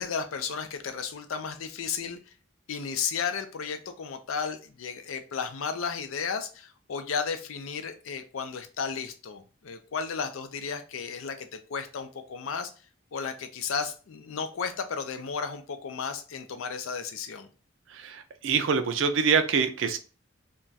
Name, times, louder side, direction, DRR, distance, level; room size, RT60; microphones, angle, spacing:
voice 1, 0.0-2.3 2.7-12.7 13.1-17.5, left 6 dB, 85° left, 9 dB, 0.4 m, -34 dB
voice 2, 17.9-20.0, right 5 dB, 70° right, 9 dB, 0.4 m, -25 dB
2.3 x 2.2 x 3.9 m, 0.37 s
head